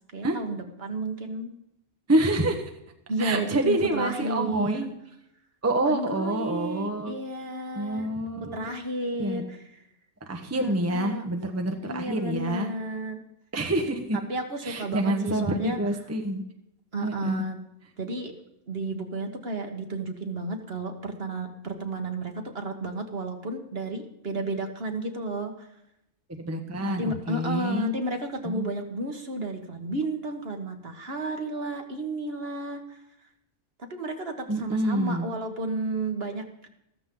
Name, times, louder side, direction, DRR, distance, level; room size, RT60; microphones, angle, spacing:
voice 1, 0.1-1.5 3.1-4.9 5.9-8.1 8.4-9.6 10.5-11.3 11.8-13.2 14.3-15.8 16.9-17.6 18.0-18.3 18.7-25.7 26.8-33.0 33.9-36.7, right 2 dB, 50° right, 5 dB, 1.6 m, -32 dB
voice 2, 2.1-2.6 3.2-4.9 5.6-7.1 7.7-8.7 9.2-9.5 10.3-12.7 13.5-14.2 14.6-16.4 17.0-17.4 26.3-27.9 28.4-28.6 34.5-35.3, right 1 dB, 15° right, 4 dB, 1.0 m, -27 dB
14.0 x 13.5 x 3.8 m, 0.82 s
omnidirectional pair, 1.3 m